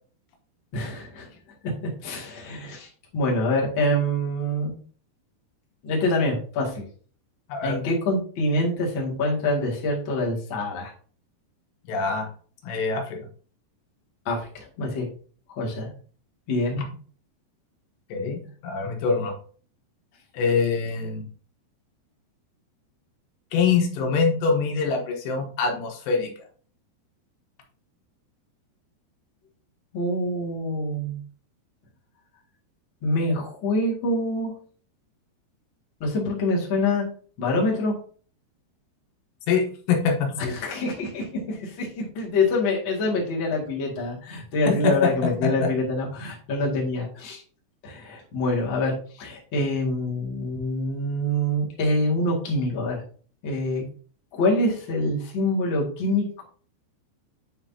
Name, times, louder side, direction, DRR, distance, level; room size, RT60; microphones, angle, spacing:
voice 1, 0.7-1.3 1.8-4.7 5.8-6.8 7.6-10.9 14.3-15.1 15.5-15.9 16.5-16.8 29.9-31.2 33.0-34.5 36.0-37.1 37.4-37.9 40.4-47.4 47.8-53.0 53.4-53.9 54.3-56.4, left 1 dB, 35° left, -3 dB, 2.1 m, -25 dB
voice 2, 7.5-7.8 11.9-12.3 12.6-13.3 16.8-16.9 18.1-19.4 20.3-21.2 23.5-26.3 39.5-40.5 44.7-45.1 45.4-45.5, left 5 dB, 75° left, 2 dB, 3.4 m, -24 dB
9.6 x 5.3 x 2.8 m, 0.42 s
omnidirectional pair, 5.0 m